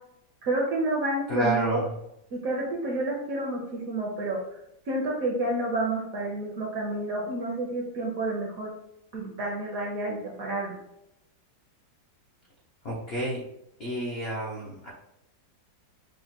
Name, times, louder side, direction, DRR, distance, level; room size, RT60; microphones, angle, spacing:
voice 1, 0.4-1.8 2.3-4.4 4.9-8.7 9.1-10.8, right 2 dB, 65° right, -2 dB, 0.8 m, -29 dB
voice 2, 1.3-2.0 12.8-13.4 13.8-14.9, right 1 dB, 70° left, -4 dB, 0.5 m, -29 dB
5.4 x 2.1 x 2.8 m, 0.82 s
omnidirectional pair, 2.1 m